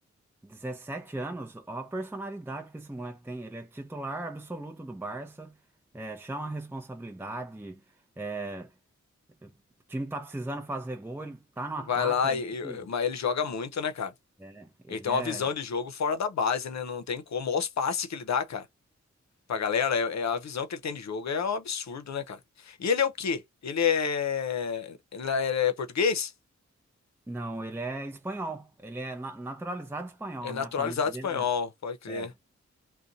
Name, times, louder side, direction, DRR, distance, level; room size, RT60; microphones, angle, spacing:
voice 1, 0.4-5.6 5.9-7.8 8.2-8.7 9.4-9.5 9.9-12.9 14.4-15.4 27.3-31.4 32.1-32.3, right 2 dB, 10° right, 0.6 m, -37 dB
voice 2, 11.9-14.1 14.9-18.7 19.5-26.3 30.4-32.3, left 6 dB, 70° left, 0.7 m, -29 dB
2.5 x 2.2 x 3.9 m
cardioid pair, 50°, 29 cm